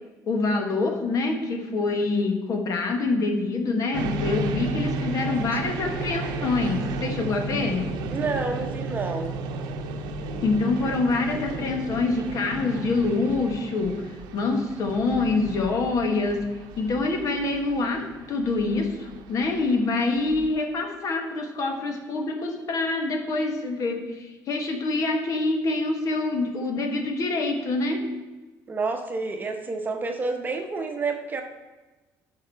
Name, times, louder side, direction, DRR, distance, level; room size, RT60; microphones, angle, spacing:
voice 1, 0.3-7.9 10.4-16.5 16.8-28.0, left 3 dB, 50° left, 4 dB, 1.4 m, -26 dB
sound 1, 3.9-20.5, right 3 dB, 85° right, 0.8 m, -33 dB
voice 2, 8.1-9.4 28.7-31.4, right 3 dB, 25° right, 4 dB, 0.9 m, -29 dB
10.5 x 6.0 x 4.6 m, 1.2 s
cardioid pair, 135°, 7 cm